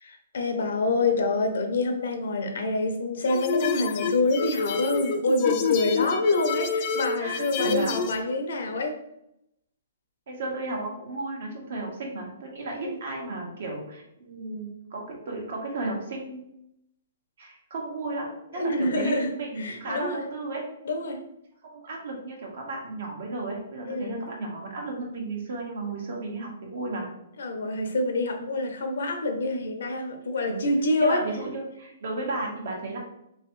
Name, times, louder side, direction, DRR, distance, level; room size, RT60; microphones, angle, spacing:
voice 1, 0.0-9.0 12.7-12.9 18.5-19.3 19.6-20.2 20.8-21.2 23.9-24.3 27.4-31.2, left 2 dB, 75° left, 5 dB, 0.7 m, -26 dB
sound 1, 3.3-8.2, left 5 dB, 35° left, 0.3 m, -29 dB
voice 2, 7.2-8.0 10.3-16.4 17.4-18.3 18.5-20.6 21.6-27.1 30.5-30.6 31.0-33.0, right 3 dB, 65° right, 0 dB, 1.2 m, -34 dB
3.4 x 3.1 x 3.1 m, 0.80 s
hypercardioid pair, 155°, 0 cm